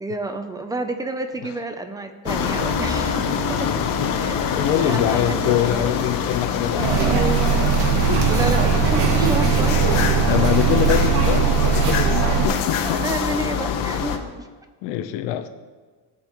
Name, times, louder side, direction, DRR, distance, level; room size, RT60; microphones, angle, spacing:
voice 1, 0.0-3.7 4.2-4.4 4.8-6.0 6.7-7.8 8.2-10.0 12.3-14.5, right 2 dB, 10° right, 7 dB, 0.4 m, -30 dB
sound 1, 2.3-14.2, left 6 dB, 50° left, 1.0 m, -25 dB
voice 2, 3.5-4.1 4.5-7.2 8.1-8.3 10.3-13.1 13.5-13.7 14.8-15.5, left 11 dB, 75° left, 8 dB, 0.8 m, -25 dB
sound 2, 6.8-12.5, right 7 dB, 80° right, 1.5 m, -20 dB
Bowed string instrument, 7.9-12.1, right 7 dB, 50° right, 0.9 m, -29 dB
16.0 x 5.5 x 3.0 m, 1.4 s
cardioid pair, 150°, 43 cm